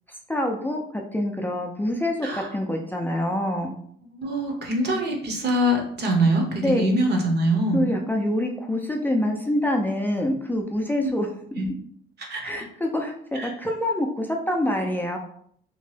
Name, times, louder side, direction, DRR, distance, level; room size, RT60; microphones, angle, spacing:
voice 1, 0.3-3.7 6.6-6.9 7.7-11.3 12.4-15.2, left 1 dB, 10° left, 1 dB, 0.4 m, -26 dB
voice 2, 4.0-7.9 10.9-11.1 11.6-11.7 12.2-12.4 13.3-13.5, right 1 dB, 60° right, 1 dB, 0.9 m, -24 dB
2.9 x 2.2 x 3.1 m, 0.63 s
cardioid pair, 90°, 20 cm